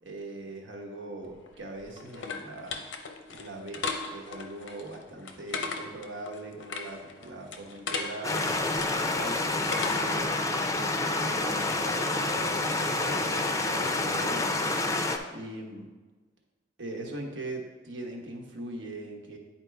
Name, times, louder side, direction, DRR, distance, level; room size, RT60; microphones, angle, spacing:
voice 1, 0.0-2.8 3.3-8.6 9.0-14.6 15.3-15.9 16.8-19.4, right 2 dB, 85° right, 1 dB, 1.2 m, -41 dB
sound 1, 1.3-10.3, left 4 dB, 85° left, 0.7 m, -38 dB
sound 2, 8.2-15.2, left 2 dB, 15° left, 0.4 m, -28 dB
9.8 x 4.5 x 3.4 m, 1.2 s
head